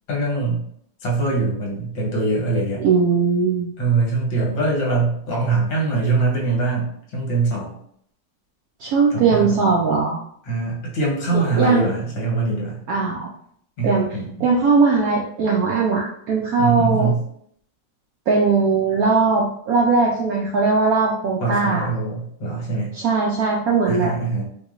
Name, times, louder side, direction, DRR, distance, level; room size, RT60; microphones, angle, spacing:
voice 1, 0.1-0.6 1.0-2.8 3.8-7.7 9.1-9.7 10.4-12.8 13.8-14.5 16.6-17.2 21.4-22.9 23.9-24.4, right 3 dB, 85° left, -3 dB, 1.8 m, -23 dB
voice 2, 2.8-3.7 8.8-10.2 11.6-11.9 12.9-13.3 13.8-14.1 14.4-17.1 18.3-21.9 22.9-24.1, right 4 dB, 75° right, -2 dB, 0.8 m, -19 dB
4.7 x 2.2 x 2.5 m, 0.67 s
omnidirectional pair, 2.0 m